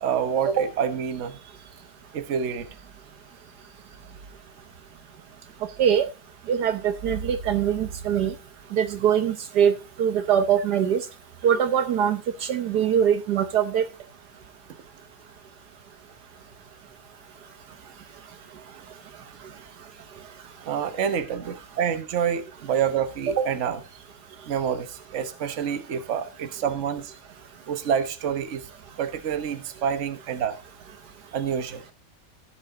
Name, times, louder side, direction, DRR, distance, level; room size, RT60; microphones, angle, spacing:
voice 1, 0.0-1.4 2.1-2.7 20.6-23.8 24.4-27.1 27.7-28.6 29.0-30.6 31.3-31.8, right 7 dB, 50° right, 1.3 m, -27 dB
voice 2, 6.5-8.3 8.7-11.0 11.4-13.9, right 8 dB, 70° right, 1.4 m, -22 dB
15.5 x 5.7 x 3.8 m
omnidirectional pair, 1.8 m